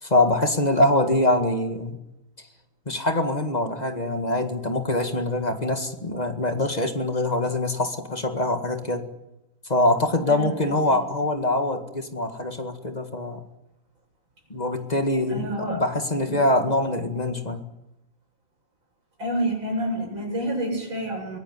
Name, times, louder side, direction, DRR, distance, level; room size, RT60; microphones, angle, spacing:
voice 1, 0.0-2.0 2.9-9.1 9.7-13.4 14.5-17.6, left 1 dB, 20° left, 6 dB, 1.8 m, -24 dB
voice 2, 10.3-11.0 15.3-15.8 16.3-16.4 19.2-21.4, right 1 dB, 80° right, 1 dB, 8.4 m, -29 dB
23.5 x 17.5 x 9.6 m, 0.94 s
omnidirectional pair, 2.1 m